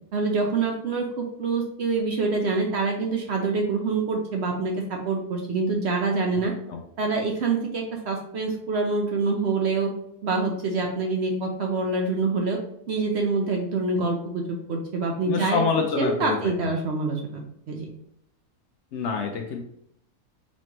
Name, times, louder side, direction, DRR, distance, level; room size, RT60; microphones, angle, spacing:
voice 1, 0.1-6.5 7.0-9.9 10.2-12.6 12.9-15.6 16.0-17.4 17.7-17.9, right 3 dB, 65° right, 2 dB, 0.7 m, -26 dB
voice 2, 15.2-16.5 18.9-19.6, left 5 dB, 65° left, 3 dB, 0.7 m, -26 dB
4.1 x 3.1 x 2.9 m, 0.74 s
omnidirectional pair, 1.5 m